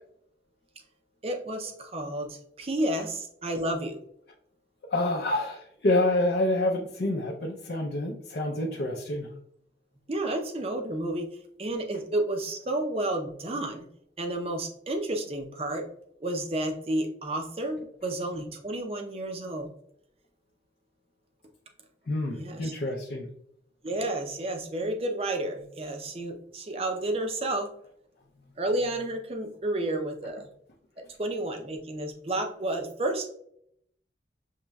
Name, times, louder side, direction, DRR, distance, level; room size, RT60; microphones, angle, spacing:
voice 1, 1.2-4.0 10.1-11.3 11.6-13.8 14.2-15.8 16.2-19.7 22.3-22.7 23.8-27.7 28.6-30.5 31.2-33.3, right 1 dB, 35° right, 4 dB, 0.6 m, -31 dB
voice 2, 4.9-9.3 22.1-23.3, left 2 dB, 65° left, -1 dB, 0.5 m, -27 dB
6.4 x 3.0 x 2.2 m, 0.72 s
head